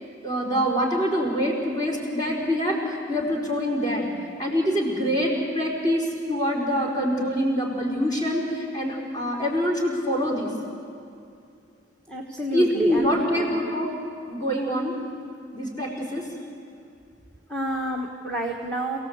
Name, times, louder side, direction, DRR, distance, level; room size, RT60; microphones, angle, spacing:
voice 1, 0.2-4.1 4.4-10.5 12.5-13.9 14.3-15.0 15.5-16.3, equal, 20° left, -2 dB, 4.8 m, -25 dB
voice 2, 12.1-13.1 17.5-19.0, right 1 dB, 5° left, -2 dB, 1.5 m, -29 dB
28.5 x 17.5 x 8.2 m, 2.5 s
head